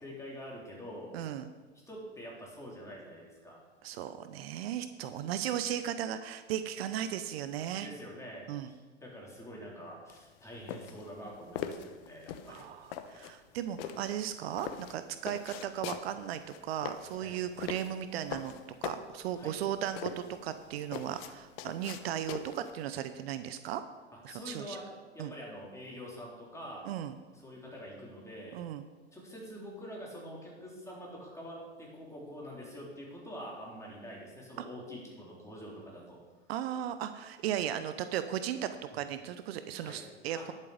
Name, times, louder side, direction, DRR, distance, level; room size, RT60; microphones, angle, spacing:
voice 1, 0.0-1.1 1.9-3.6 5.2-5.3 7.7-12.7 17.2-17.4 19.4-19.5 24.3-24.9 25.1-26.8 27.4-28.6 29.1-36.2 39.8-40.0 40.3-40.4, equal, 10° left, -3 dB, 3.7 m, -46 dB
voice 2, 1.1-1.5 3.8-7.9 8.5-8.7 12.5-18.5 18.8-23.8 24.2-24.8 25.2-25.3 26.8-27.2 28.5-28.8 34.6-34.7 36.5-40.5, right 10 dB, 60° right, 11 dB, 0.7 m, -36 dB
sound 1, 10.1-22.8, left 9 dB, 55° left, 0.9 m, -42 dB
11.0 x 7.5 x 5.1 m, 1.3 s
hypercardioid pair, 95°, 34 cm